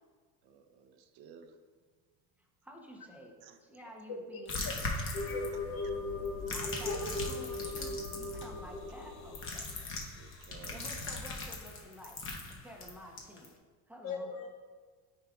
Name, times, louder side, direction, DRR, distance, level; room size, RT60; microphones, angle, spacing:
voice 1, 0.4-1.6 3.4-3.6 5.8-5.9 6.5-6.6 7.8-7.9 10.1-10.9, right 6 dB, 65° right, 7 dB, 0.6 m, -55 dB
voice 2, 2.4-4.6 6.5-9.7 10.7-12.2 12.5-13.5 13.9-14.3, equal, 5° right, 0 dB, 0.7 m, -51 dB
voice 3, 4.1-4.7 5.3-6.0 6.8-7.0 14.0-14.5, left 5 dB, 55° left, 2 dB, 1.2 m, -40 dB
sound 1, 4.5-5.8 6.3-8.5 9.3-13.5, left 3 dB, 35° left, 0.9 m, -39 dB
sound 2, 5.1-11.6, left 2 dB, 80° left, 1.3 m, -40 dB
9.3 x 5.1 x 2.3 m, 1.5 s
cardioid pair, 135°, 39 cm